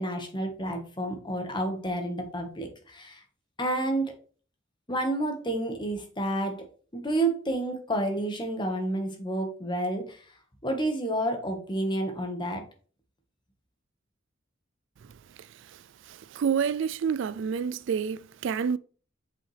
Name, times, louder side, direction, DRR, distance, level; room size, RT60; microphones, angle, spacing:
voice 1, 0.0-3.2 3.6-4.1 4.9-6.6 6.9-10.2 10.6-12.6, right 1 dB, 25° left, 1.5 m, -30 dB
voice 2, 16.1-18.8, right 7 dB, 65° right, 0.3 m, -28 dB
7.0 x 5.6 x 3.3 m
head